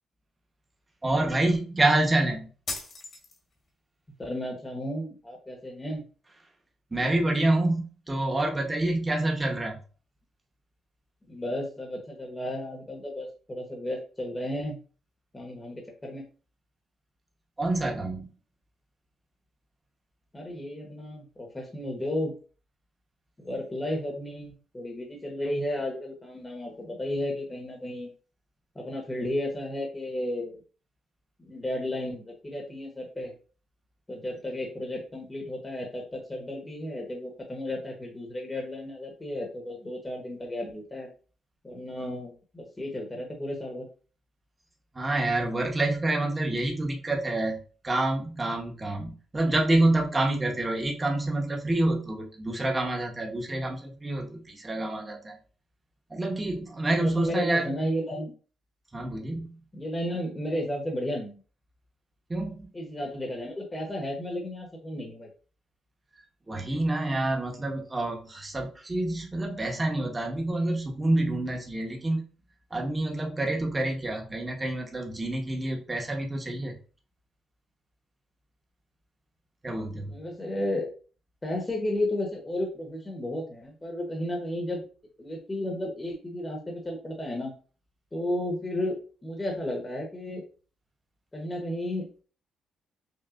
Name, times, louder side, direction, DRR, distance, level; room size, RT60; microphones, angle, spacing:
voice 1, 1.0-2.5 6.9-9.8 17.6-18.3 44.9-55.4 56.1-57.7 58.9-59.6 62.3-62.7 66.5-72.3 72.7-76.8 79.6-80.1, right 2 dB, 20° right, 1 dB, 1.1 m, -27 dB
sound 1, 2.7-3.7, left 3 dB, 45° left, 1.4 m, -37 dB
voice 2, 4.2-6.0 11.3-14.8 15.3-16.2 20.3-22.3 23.4-28.1 28.7-30.6 31.4-33.3 34.1-41.1 41.6-43.9 57.0-58.3 59.7-61.4 62.7-65.3 80.1-80.9 81.4-84.8 85.2-87.5 88.1-89.0 89.2-90.4 91.3-92.1, left 1 dB, 20° left, 0 dB, 1.1 m, -33 dB
5.7 x 2.4 x 2.5 m, 0.38 s
cardioid pair, 90°, 0 cm